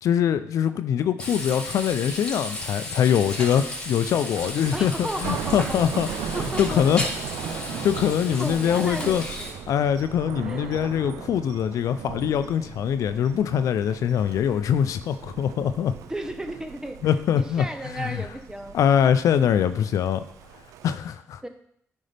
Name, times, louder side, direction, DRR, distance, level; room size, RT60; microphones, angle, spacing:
voice 1, 0.0-7.0 7.5-9.2 9.7-15.9 17.0-18.2 18.7-20.2 20.8-21.4, left 9 dB, 75° left, 11 dB, 0.4 m, -23 dB
Frying (food), 1.2-9.5, left 1 dB, 20° left, 2.8 m, -34 dB
Thunder, 3.2-20.9, right 9 dB, 85° right, 0.5 m, -38 dB
voice 2, 4.7-6.8 8.3-9.6 10.4-10.9 16.1-18.8 21.4-21.5, right 1 dB, 10° right, 7 dB, 1.0 m, -34 dB
9.7 x 5.4 x 3.4 m, 0.70 s
supercardioid pair, 60°, 6 cm